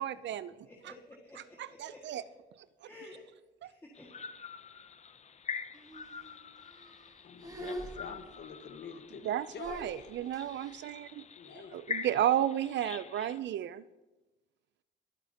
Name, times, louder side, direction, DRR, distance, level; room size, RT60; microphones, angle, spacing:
voice 1, 0.0-0.6 0.8-0.9 1.4-2.2 2.8-2.9 3.6-3.7 9.2-11.2 11.5-13.8, right 11 dB, 65° right, 16 dB, 0.4 m, -33 dB
voice 2, 0.6-2.0 2.8-3.2 3.6-4.2, left 2 dB, 15° left, -3 dB, 1.9 m, -52 dB
sound 1, 3.9-13.4, left 6 dB, 35° left, 0.6 m, -45 dB
sound 2, 5.7-6.3 6.7-7.1 7.4-8.6 9.6-10.8, right 1 dB, 20° right, 4.1 m, -45 dB
voice 3, 7.2-10.1 11.3-11.8, left 6 dB, 60° left, 7 dB, 1.4 m, -47 dB
23.0 x 8.3 x 2.9 m, 1.1 s
cardioid pair, 90°, 20 cm